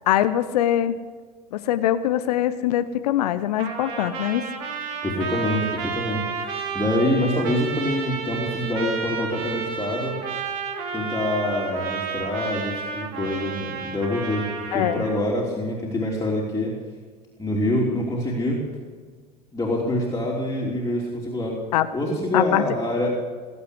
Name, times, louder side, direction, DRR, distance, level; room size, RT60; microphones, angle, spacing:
voice 1, 0.1-0.9 1.5-4.5 14.7-15.0 21.7-21.9 22.3-22.6, left 12 dB, 70° left, 12 dB, 0.7 m, -22 dB
Trumpet, 3.6-15.2, right 5 dB, 65° right, 2.2 m, -31 dB
voice 2, 5.0-6.4 6.7-10.2 10.9-16.7 17.4-18.6 19.5-21.5 21.9-23.2, left 1 dB, 15° left, -4 dB, 3.2 m, -25 dB
19.5 x 8.3 x 8.3 m, 1.5 s
figure-of-eight pair, 70°, 21 cm